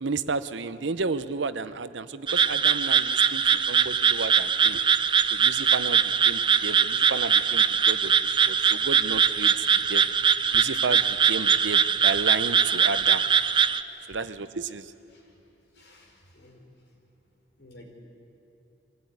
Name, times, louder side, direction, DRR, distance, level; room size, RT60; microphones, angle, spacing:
voice 1, 0.0-4.8 5.3-8.1 8.5-9.5 9.9-10.1 10.5-13.2 14.1-14.8, right 4 dB, 85° right, 13 dB, 0.8 m, -32 dB
sound 1, 2.3-13.8, right 7 dB, 25° right, 0.5 m, -22 dB
voice 2, 13.9-14.2 15.1-15.4 15.7-16.6 17.6-17.9, left 1 dB, 65° left, 1 dB, 4.3 m, -53 dB
24.0 x 16.5 x 9.5 m, 2.8 s
head